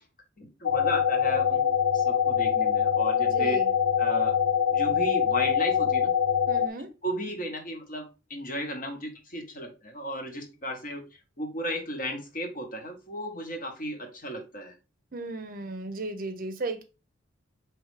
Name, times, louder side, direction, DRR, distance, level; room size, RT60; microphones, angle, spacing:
voice 1, 0.4-1.7 1.9-3.6 4.0-4.3 4.7-6.1 7.0-14.7, equal, 40° left, 0.9 m, -35 dB
sound 1, 0.6-6.7, left 8 dB, 90° left, 0.3 m, -24 dB
voice 2, 3.2-3.7 6.5-6.9 15.1-16.8, right 2 dB, 45° right, 0.5 m, -35 dB
4.6 x 3.1 x 3.1 m
head